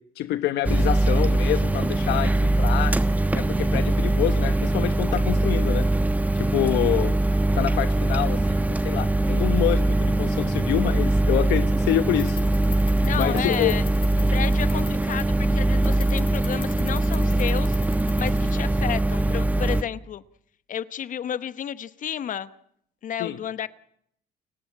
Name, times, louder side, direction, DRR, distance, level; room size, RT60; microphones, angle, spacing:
voice 1, 0.2-2.9 3.3-5.9 6.3-7.1 7.5-12.4 13.2-13.8 23.2-23.4, left 13 dB, 80° left, 10 dB, 1.3 m, -27 dB
sound 1, 0.6-19.8, right 2 dB, 10° right, 1.1 m, -22 dB
sound 2, 11.8-19.0, left 5 dB, 30° left, 5.9 m, -42 dB
voice 2, 13.0-13.8 14.3-17.8 18.2-20.2 20.7-22.5 23.0-23.7, left 9 dB, 50° left, 14 dB, 1.0 m, -31 dB
30.0 x 16.0 x 8.6 m, 0.71 s
cardioid pair, 110°, 17 cm